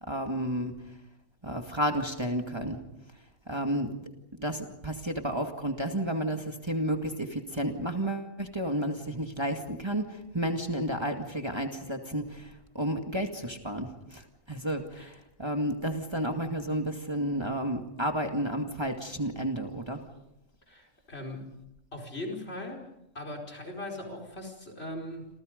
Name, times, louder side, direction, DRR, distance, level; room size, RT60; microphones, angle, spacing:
voice 1, 0.1-1.0 1.4-2.8 3.5-3.9 4.3-20.1, right 1 dB, 20° right, 4 dB, 2.2 m, -32 dB
voice 2, 20.7-21.5 21.9-22.8 23.2-25.3, left 1 dB, 50° left, 1 dB, 5.1 m, -39 dB
28.5 x 28.0 x 5.3 m, 0.85 s
omnidirectional pair, 1.3 m